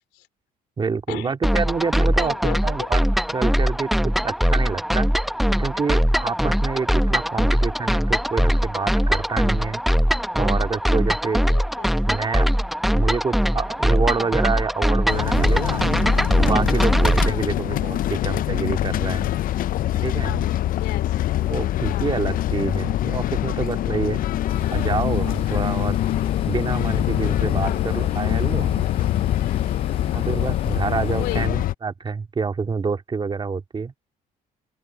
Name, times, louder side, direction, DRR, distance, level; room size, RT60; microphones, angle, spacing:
voice 1, 0.8-2.4 2.6-3.0 3.3-5.1 5.6-9.8 10.4-11.4 12.1-12.5 12.9-15.9 16.3-19.3 20.0-20.4 21.5-24.2 24.7-25.9 26.5-28.8 30.1-33.9, right 5 dB, 30° right, 2.1 m, -27 dB
sound 1, 1.4-17.3, equal, ahead, 0.8 m, -21 dB
voice 2, 2.2-2.9 7.3-7.6 11.4-11.9 17.2-17.7 18.0-18.5 20.1-21.2 21.8-22.2 27.6-27.8 31.2-31.5, left 17 dB, 85° left, 3.2 m, -37 dB
sound 2, 15.1-31.7, left 13 dB, 55° left, 0.5 m, -24 dB
sound 3, 24.5-31.5, left 6 dB, 35° left, 4.3 m, -34 dB
open air
cardioid pair, 110°, 17 cm